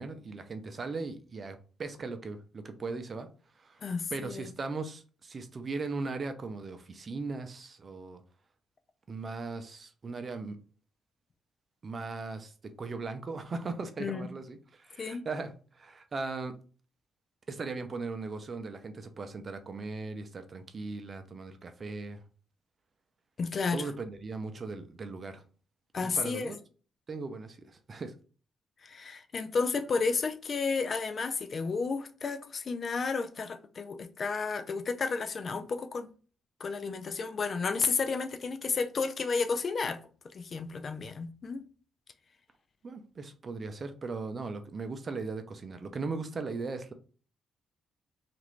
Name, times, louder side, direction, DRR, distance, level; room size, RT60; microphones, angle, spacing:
voice 1, 0.0-3.3 3.6-3.8 4.1-8.2 9.1-10.6 11.8-12.5 12.8-16.5 17.5-22.2 23.7-25.4 26.2-26.6 27.1-28.1 42.8-46.9, right 3 dB, 40° right, 0.5 m, -38 dB
voice 2, 3.8-4.5 14.0-14.2 15.0-15.3 23.4-23.9 25.9-26.5 28.8-36.1 36.6-40.0 40.3-41.6, left 4 dB, 45° left, 0.3 m, -32 dB
2.9 x 2.5 x 3.1 m
cardioid pair, 90°, 0 cm